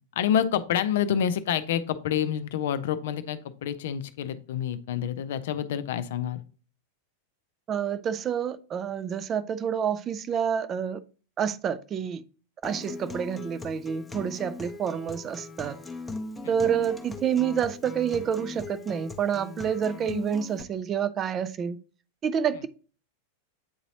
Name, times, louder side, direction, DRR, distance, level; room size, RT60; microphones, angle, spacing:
voice 1, 0.2-6.4 16.4-16.5, left 9 dB, 55° left, 0.5 m, -28 dB
voice 2, 7.7-11.0 11.4-12.2 12.6-15.8 16.5-21.8 22.2-22.7, right 8 dB, 25° right, 0.4 m, -28 dB
Acoustic guitar, 12.6-20.6, left 3 dB, 5° left, 0.7 m, -39 dB
8.6 x 4.0 x 2.7 m
figure-of-eight pair, 90°, 0 cm